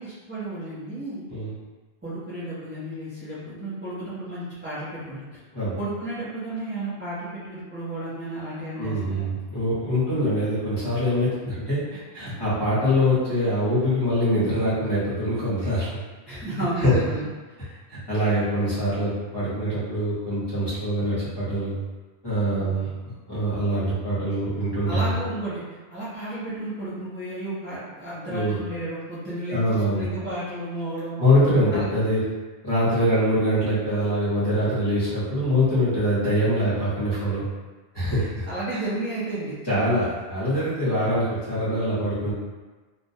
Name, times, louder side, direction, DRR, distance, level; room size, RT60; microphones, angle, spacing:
voice 1, 0.0-1.2 2.0-5.4 5.8-9.3 16.3-17.3 17.6-17.8 22.6-22.7 24.9-31.2 31.7-31.9 38.0-39.6, right 1 dB, 15° right, -12 dB, 0.4 m, -33 dB
voice 2, 8.8-16.0 16.8-16.9 17.9-21.8 22.2-22.9 23.3-25.1 28.3-28.6 29.5-30.0 31.2-32.2 32.6-37.4 37.9-38.5 39.7-42.3, equal, 25° left, -11 dB, 0.8 m, -24 dB
2.3 x 2.1 x 2.6 m, 1.3 s
omnidirectional pair, 1.1 m